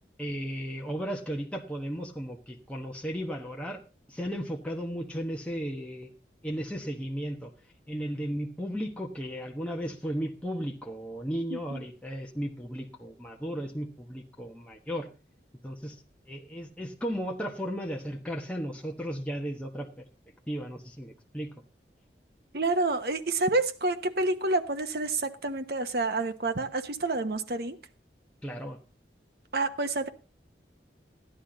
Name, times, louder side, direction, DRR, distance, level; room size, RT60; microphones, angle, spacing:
voice 1, 0.2-3.8 4.1-6.1 6.4-7.5 7.9-15.1 15.6-16.0 16.3-19.9 20.5-21.5 28.4-28.8, equal, 5° left, 1.1 m, -35 dB
voice 2, 11.5-11.8 22.5-27.8 29.5-30.1, right 2 dB, 60° right, 1.0 m, -28 dB
13.5 x 10.5 x 3.9 m
head